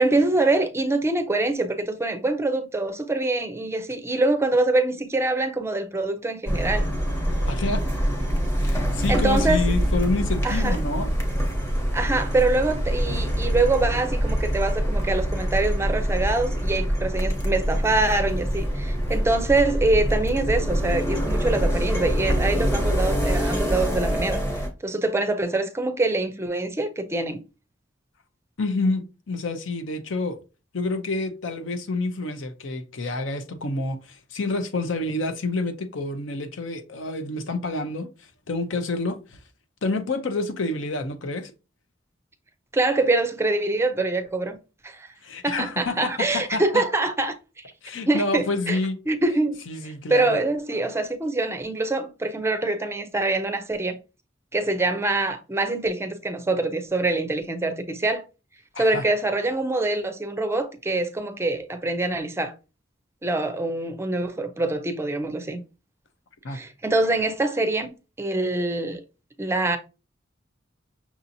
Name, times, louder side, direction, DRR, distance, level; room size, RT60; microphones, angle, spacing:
voice 1, 0.0-6.9 9.1-9.6 10.4-10.7 11.9-24.4 24.8-27.4 42.7-44.6 44.8-45.1 45.4-47.3 48.1-48.8 49.1-54.0 54.5-58.2 58.8-62.5 63.2-65.6 66.5-69.0 69.4-69.8, right 2 dB, 15° right, 0.4 m, -24 dB
sound 1, 6.5-24.7, equal, 15° left, 0.8 m, -25 dB
voice 2, 7.5-7.8 8.6-11.1 28.6-30.4 30.7-38.1 38.5-39.4 39.8-41.5 45.2-46.8 47.8-49.0 49.7-50.4 58.7-59.0 66.4-66.6, left 2 dB, 85° left, 0.6 m, -28 dB
5.9 x 2.8 x 2.6 m
head